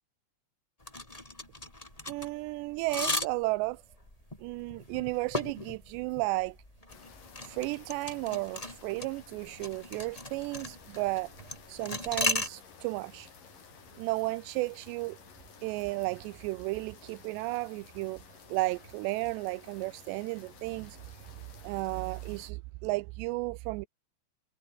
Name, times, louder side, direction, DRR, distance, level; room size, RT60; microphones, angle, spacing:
sound 1, 0.8-12.5, left 2 dB, 10° left, 2.3 m, -37 dB
voice 1, 2.1-3.8 4.4-6.6 7.4-11.3 11.7-13.3 14.0-15.2 15.6-18.2 18.5-21.0 21.6-23.9, right 23 dB, 90° right, 2.8 m, -33 dB
sound 2, 6.9-22.5, left 6 dB, 55° left, 5.6 m, -54 dB
omnidirectional pair, 4.9 m